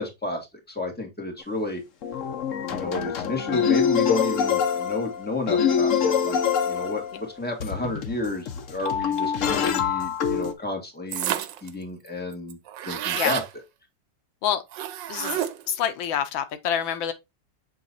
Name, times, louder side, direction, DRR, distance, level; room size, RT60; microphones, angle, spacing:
voice 1, 0.0-1.8 2.7-6.4 6.7-13.4, left 2 dB, 5° left, 1.6 m, -31 dB
sound 1, 1.4-1.5 2.0-10.5, left 7 dB, 55° left, 0.9 m, -25 dB
sound 2, 11.1-11.7 12.1-12.2 12.3-13.5 14.7-15.7, right 11 dB, 75° right, 1.3 m, -30 dB
voice 2, 15.1-17.1, left 9 dB, 80° left, 1.5 m, -27 dB
7.7 x 3.1 x 4.1 m
omnidirectional pair, 2.1 m